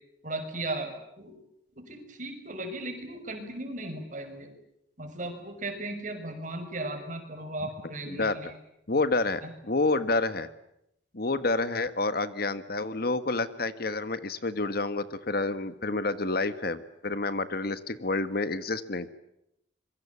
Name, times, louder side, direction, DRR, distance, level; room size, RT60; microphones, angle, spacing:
voice 1, 0.2-1.3 1.8-4.5 5.0-8.5 9.4-9.5, right 2 dB, 45° right, 6 dB, 6.2 m, -36 dB
voice 2, 8.1-8.4 8.9-10.5 11.1-19.1, left 3 dB, 55° left, 12 dB, 1.5 m, -29 dB
26.5 x 23.5 x 8.5 m, 0.81 s
head